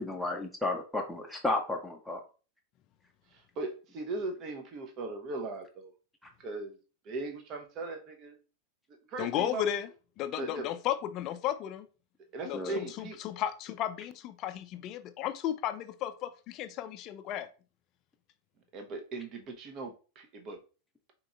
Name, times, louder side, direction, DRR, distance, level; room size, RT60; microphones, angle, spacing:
voice 1, 0.0-2.2 12.5-12.8, left 2 dB, 5° left, 1 dB, 0.6 m, -33 dB
voice 2, 3.3-5.9 6.4-6.8 7.0-8.4 9.1-9.7 10.4-10.7 12.3-13.2 18.7-20.6, right 3 dB, 35° right, 4 dB, 0.8 m, -38 dB
voice 3, 9.2-9.9 10.2-11.9 12.4-17.5, left 11 dB, 35° left, 11 dB, 0.4 m, -34 dB
4.8 x 3.0 x 2.4 m, 0.35 s
figure-of-eight pair, 90°, 0 cm